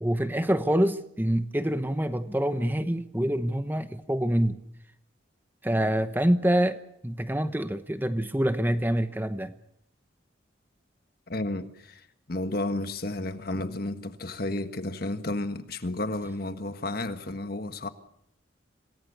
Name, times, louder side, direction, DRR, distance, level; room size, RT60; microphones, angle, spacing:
voice 1, 0.0-4.6 5.6-6.8 7.0-9.5, right 1 dB, 10° right, 1.0 m, -26 dB
voice 2, 11.3-17.9, left 2 dB, 50° left, 1.5 m, -32 dB
27.0 x 19.0 x 6.9 m
head